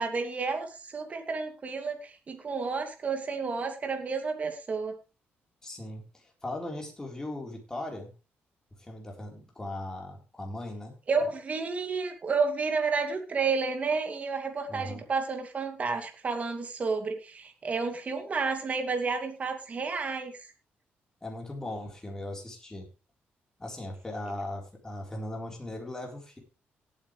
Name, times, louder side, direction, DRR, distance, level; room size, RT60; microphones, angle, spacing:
voice 1, 0.0-4.9 11.1-20.3, right 4 dB, 35° right, 4 dB, 2.5 m, -31 dB
voice 2, 5.6-8.1 8.8-10.9 14.7-15.0 21.2-22.9 23.6-26.4, left 1 dB, 15° left, 0 dB, 4.1 m, -38 dB
17.5 x 8.9 x 3.3 m, 0.32 s
cardioid pair, 120°, 4 cm